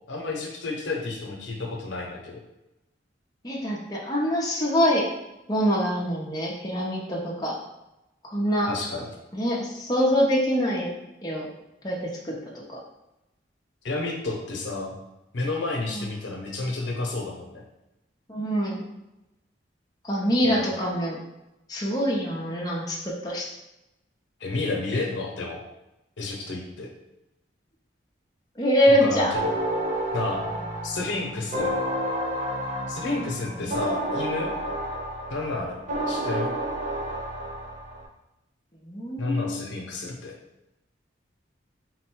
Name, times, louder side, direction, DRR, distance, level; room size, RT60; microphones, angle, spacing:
voice 1, 0.1-2.4 8.7-9.1 13.8-14.9 15.3-17.6 20.4-20.7 24.4-25.6 26.2-26.9 28.9-29.5 30.1-30.4 30.8-31.7 32.9-34.5 35.3-35.8 36.1-36.5 39.2-40.4, left 2 dB, 85° left, 0 dB, 0.8 m, -30 dB
voice 2, 3.4-5.0 5.5-7.5 8.3-8.7 9.3-10.9 11.2-11.5 11.8-12.8 15.9-16.1 18.3-18.8 20.0-21.2 21.7-23.5 28.6-29.4 33.5-33.7 38.8-39.6, equal, 20° left, -4 dB, 0.7 m, -25 dB
sound 1, 29.3-38.1, right 1 dB, 45° right, 0.6 m, -30 dB
4.0 x 2.2 x 4.5 m, 0.91 s
head